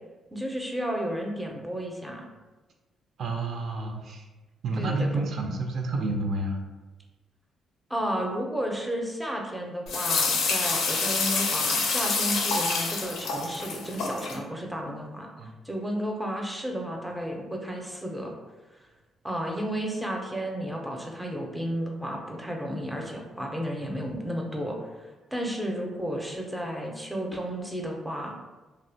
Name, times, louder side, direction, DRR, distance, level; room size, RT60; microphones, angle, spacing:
voice 1, 0.3-2.3 4.8-5.2 7.9-15.3 15.6-18.3 18.7-18.8 19.2-28.3, equal, 5° right, 0 dB, 0.5 m, -32 dB
voice 2, 3.2-4.2 4.6-6.6 15.4-15.5, right 2 dB, 60° right, 2 dB, 0.4 m, -29 dB
sound 1, 9.9-14.4, left 4 dB, 85° left, 0.4 m, -27 dB
2.7 x 2.1 x 2.7 m, 1.2 s
cardioid pair, 90°, 0 cm